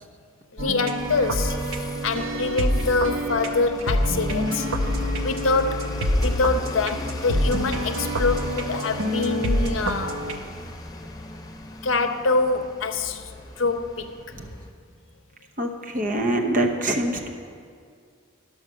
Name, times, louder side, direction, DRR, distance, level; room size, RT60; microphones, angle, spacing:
voice 1, 0.5-1.6 2.0-4.7 5.2-5.9 6.2-10.2 11.8-14.1, left 3 dB, 75° left, 8 dB, 0.6 m, -25 dB
sound 1, 0.6-10.4, equal, 80° right, 0.7 m, -27 dB
sound 2, 1.0-14.7, left 2 dB, 20° left, 0.5 m, -35 dB
voice 2, 15.6-17.3, right 1 dB, 40° right, 3 dB, 0.9 m, -24 dB
10.5 x 6.4 x 6.2 m, 2.3 s
head